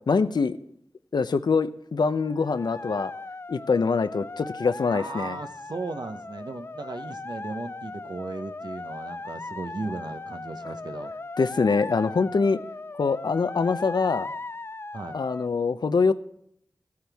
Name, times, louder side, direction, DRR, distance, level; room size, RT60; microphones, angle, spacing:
voice 1, 0.1-0.6 1.1-3.1 3.5-5.4 11.4-12.6 13.0-14.3 15.1-16.1, left 4 dB, 90° left, 12 dB, 0.6 m, -24 dB
sound 1, 2.3-15.5, left 3 dB, 35° left, 0.3 m, -38 dB
voice 2, 4.9-11.1 14.9-15.2, right 3 dB, 80° right, 8 dB, 0.9 m, -36 dB
15.5 x 9.5 x 3.5 m, 0.72 s
wide cardioid pair, 45°, 7 cm